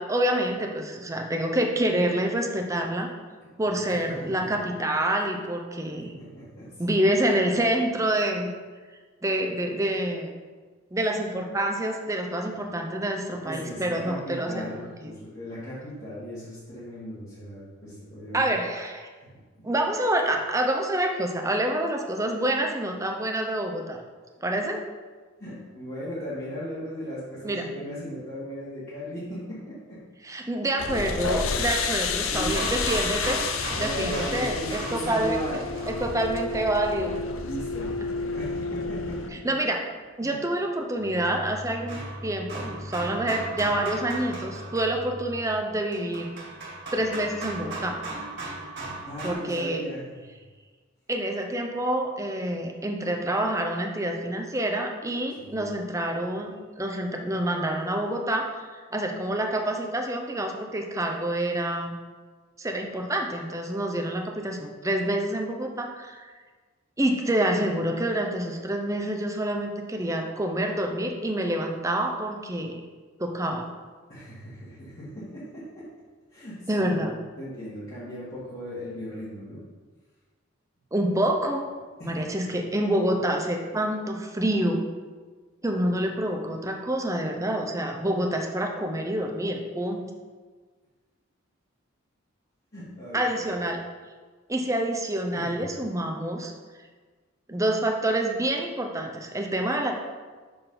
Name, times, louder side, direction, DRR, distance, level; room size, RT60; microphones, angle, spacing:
voice 1, 0.0-3.1 3.6-6.1 6.8-8.5 9.2-10.3 10.9-15.1 18.3-19.1 19.6-24.0 24.4-24.8 27.4-27.7 30.3-33.4 33.8-35.4 35.9-37.2 39.4-39.8 40.2-46.3 46.9-48.0 49.2-49.8 51.1-58.4 58.9-61.9 62.6-66.2 67.0-72.8 73.2-73.6 76.7-77.1 80.9-81.6 82.1-84.8 85.6-90.0 93.1-93.8 94.5-96.5 97.5-99.9, right 1 dB, 15° right, 3 dB, 0.7 m, -27 dB
voice 2, 3.4-4.5 6.0-6.9 13.2-18.5 25.4-30.0 32.2-32.7 33.7-35.8 37.4-39.5 40.2-40.3 49.0-50.2 55.3-55.7 74.1-75.8 76.3-79.6 82.0-82.2 92.7-93.6 95.3-95.6, equal, 45° left, -12 dB, 2.0 m, -37 dB
sound 1, 30.8-39.3, left 4 dB, 85° left, 0.6 m, -30 dB
sound 2, 32.3-36.7 39.1-39.2 41.0-49.3, right 2 dB, 60° right, 2.3 m, -37 dB
6.9 x 6.2 x 3.9 m, 1.4 s
head